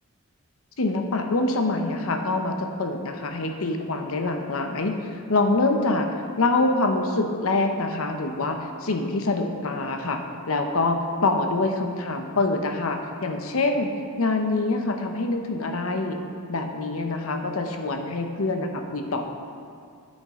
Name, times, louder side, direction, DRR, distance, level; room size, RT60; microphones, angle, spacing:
voice 1, 0.8-6.1 6.4-10.2 10.5-13.9 14.2-16.2 16.5-19.2, left 2 dB, 75° left, 5 dB, 0.8 m, -25 dB
9.2 x 8.8 x 3.7 m, 2.3 s
head